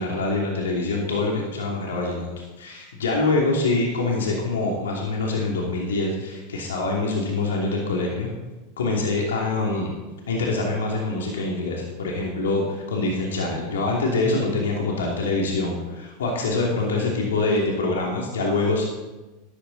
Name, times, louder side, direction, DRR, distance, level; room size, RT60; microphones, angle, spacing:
voice 1, 0.0-2.3 2.6-8.3 8.8-9.9 10.3-18.8, left 3 dB, 90° left, -1 dB, 2.8 m, -25 dB
13.5 x 12.0 x 4.1 m, 1.1 s
hypercardioid pair, 105°, 0 cm